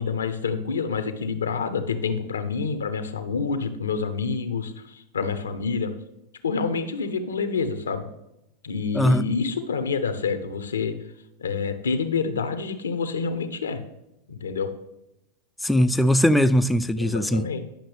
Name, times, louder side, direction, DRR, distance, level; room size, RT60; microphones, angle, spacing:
voice 1, 0.0-5.9 6.4-8.0 8.6-11.0 11.4-13.8 14.3-14.7 17.0-17.6, left 5 dB, 85° left, 0.8 m, -27 dB
voice 2, 15.6-17.5, equal, 5° left, 0.4 m, -20 dB
10.0 x 5.8 x 3.4 m
hypercardioid pair, 95°, 0 cm